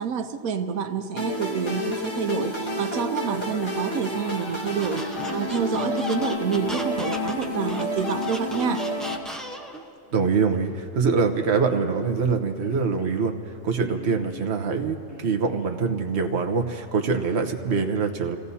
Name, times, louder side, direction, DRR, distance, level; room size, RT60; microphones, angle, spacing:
voice 1, 0.0-8.8, right 6 dB, 85° right, 7 dB, 1.3 m, -28 dB
sound 1, 1.2-9.2, left 1 dB, 20° left, 1.2 m, -30 dB
Squeak, 4.8-9.8, equal, ahead, 0.8 m, -37 dB
sound 2, 6.5-7.1 7.7-8.2 8.9-9.7 10.1-10.7 11.4-12.1 12.6-13.2 13.9-14.5 15.1-15.7, right 1 dB, 65° left, 2.1 m, -45 dB
voice 2, 10.1-18.4, right 5 dB, 55° right, 4 dB, 1.2 m, -24 dB
30.0 x 16.5 x 2.8 m, 2.8 s
omnidirectional pair, 1.4 m